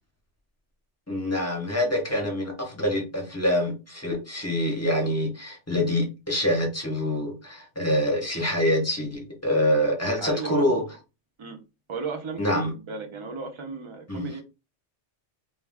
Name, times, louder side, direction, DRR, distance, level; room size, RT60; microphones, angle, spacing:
voice 1, 1.1-10.8 12.4-12.7 14.1-14.3, left 1 dB, 15° left, 0 dB, 0.7 m, -25 dB
voice 2, 10.2-10.9 11.4-11.6 11.9-14.4, right 5 dB, 40° right, 4 dB, 0.4 m, -35 dB
2.3 x 2.3 x 3.4 m, 0.28 s
omnidirectional pair, 1.2 m